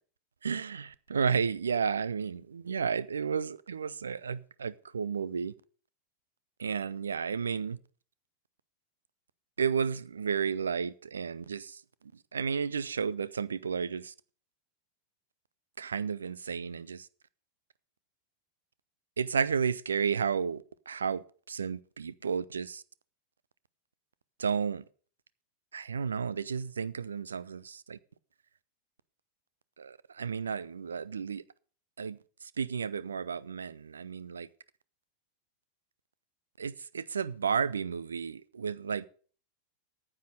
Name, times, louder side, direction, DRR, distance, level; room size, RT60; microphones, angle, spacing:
voice 1, 0.4-0.8 1.1-5.5 6.6-7.8 9.6-11.8 12.3-14.1 15.8-17.1 19.2-22.8 24.4-24.8 25.7-28.0 29.8-31.4 32.0-34.5 36.6-39.1, right 6 dB, 70° right, 0.5 m, -32 dB
9.4 x 8.5 x 6.3 m
figure-of-eight pair, 90°, 0 cm